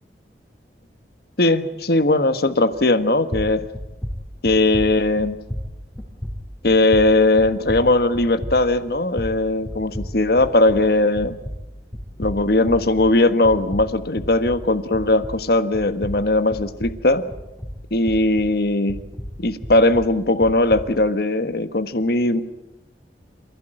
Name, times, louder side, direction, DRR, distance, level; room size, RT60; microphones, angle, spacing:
voice 1, 1.4-3.6 4.4-5.4 6.6-11.4 12.2-17.2 17.9-19.0 19.4-22.4, left 2 dB, 60° left, 11 dB, 1.4 m, -19 dB
sound 1, 2.7-3.0 3.3-10.9 11.2-15.5 15.7-18.6 18.9-20.9, equal, 10° left, 4.5 m, -33 dB
28.0 x 16.0 x 9.0 m, 1.0 s
head